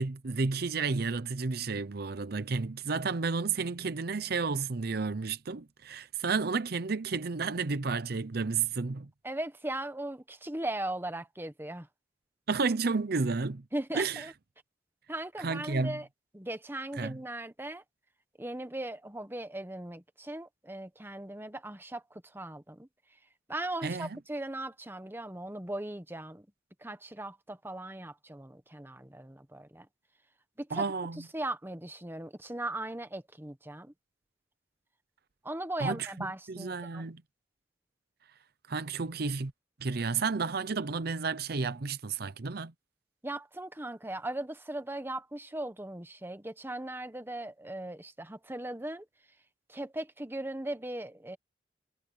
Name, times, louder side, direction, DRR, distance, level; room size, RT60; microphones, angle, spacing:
voice 1, 0.0-9.1 12.5-13.6 13.9-14.3 15.4-16.0 17.0-17.2 23.8-24.2 30.7-31.3 35.8-37.2 38.7-39.5 39.8-42.7, right 4 dB, 60° right, 0.7 m, -31 dB
voice 2, 9.2-11.9 13.7-14.3 15.1-16.1 16.3-17.8 18.4-22.9 23.5-26.4 26.8-29.9 30.6-30.8 31.3-33.9 35.4-37.1 43.2-49.0 49.7-51.4, right 1 dB, 15° right, 1.2 m, -38 dB
head